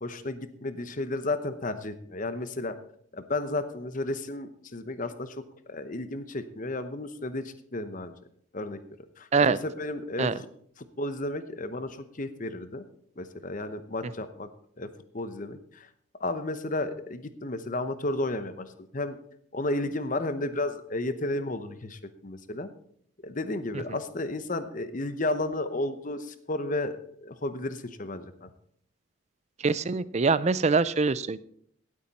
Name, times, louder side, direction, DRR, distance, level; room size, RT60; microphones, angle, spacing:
voice 1, 0.0-2.8 3.1-5.4 5.7-8.1 8.5-8.8 9.2-10.3 11.0-12.8 13.2-14.5 14.8-14.9 15.1-15.9 16.2-18.7 18.9-19.2 19.5-22.7 23.2-28.5, left 2 dB, 35° left, 11 dB, 0.9 m, -33 dB
voice 2, 29.6-31.4, right 4 dB, 30° right, 17 dB, 0.4 m, -24 dB
16.5 x 8.5 x 4.2 m, 0.67 s
head